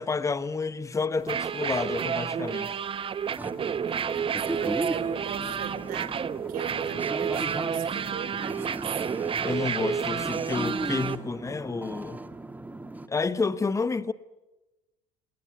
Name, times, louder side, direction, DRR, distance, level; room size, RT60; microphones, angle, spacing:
voice 1, 0.0-2.8 9.4-12.2 13.1-14.1, left 4 dB, 15° left, 1.1 m, -30 dB
sound 1, 1.2-11.2, right 7 dB, 30° right, 1.1 m, -30 dB
sound 2, 3.4-13.1, right 2 dB, 10° right, 1.6 m, -36 dB
voice 2, 3.8-9.0, right 9 dB, 55° right, 4.5 m, -40 dB
29.5 x 18.5 x 8.4 m
hypercardioid pair, 80°, 18 cm